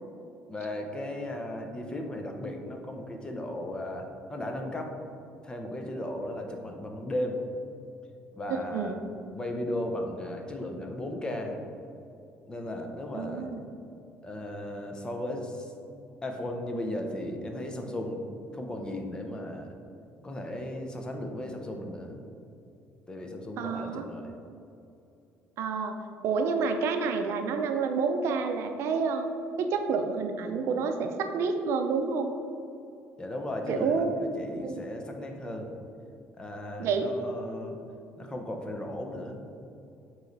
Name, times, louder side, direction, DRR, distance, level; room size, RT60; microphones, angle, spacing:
voice 1, 0.5-5.0 5.4-7.4 8.3-8.9 9.3-11.6 12.5-13.5 14.2-15.7 16.2-18.2 18.5-19.8 20.2-22.2 23.1-24.3 33.2-35.7 36.4-37.8 38.2-39.5, left 1 dB, 15° left, 3 dB, 0.7 m, -36 dB
voice 2, 8.5-9.0 13.1-13.6 23.6-24.1 25.6-26.0 26.2-29.2 29.6-32.3 33.7-34.1 34.6-34.8 36.8-37.1, right 5 dB, 65° right, 6 dB, 0.5 m, -29 dB
8.9 x 3.2 x 4.0 m, 2.7 s
cardioid pair, 125°, 5 cm